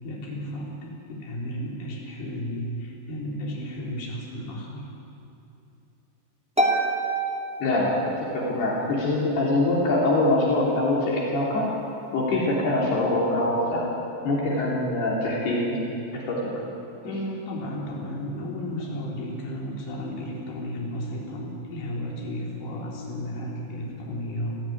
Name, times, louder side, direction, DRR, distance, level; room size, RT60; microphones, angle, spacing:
voice 1, 0.0-4.9 17.0-24.6, equal, 45° left, -3 dB, 5.2 m, -33 dB
Harp, 6.6-8.4, right 2 dB, 5° right, 1.1 m, -26 dB
voice 2, 7.6-11.7 12.1-13.8 14.2-15.8 16.1-16.5 17.0-17.1, left 2 dB, 60° left, -4 dB, 5.3 m, -24 dB
29.5 x 15.5 x 9.3 m, 2.8 s
omnidirectional pair, 5.2 m